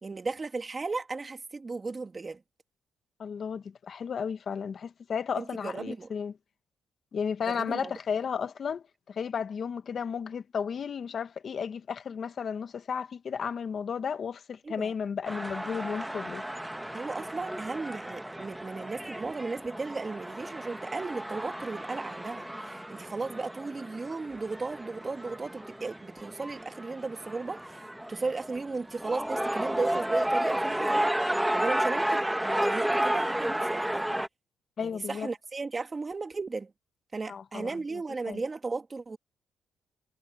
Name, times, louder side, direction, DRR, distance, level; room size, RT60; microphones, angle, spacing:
voice 1, 0.0-2.4 5.4-6.1 7.5-7.9 14.6-14.9 16.9-31.1 31.5-34.1 34.8-36.7 37.1-39.2, right 3 dB, 30° right, 2.4 m, -35 dB
voice 2, 3.2-6.3 7.1-16.4 34.8-35.3 37.3-38.0 38.3-38.4, left 6 dB, 50° left, 1.3 m, -33 dB
sound 1, 15.2-34.3, right 1 dB, 5° right, 1.5 m, -32 dB
cardioid pair, 90°, 0 cm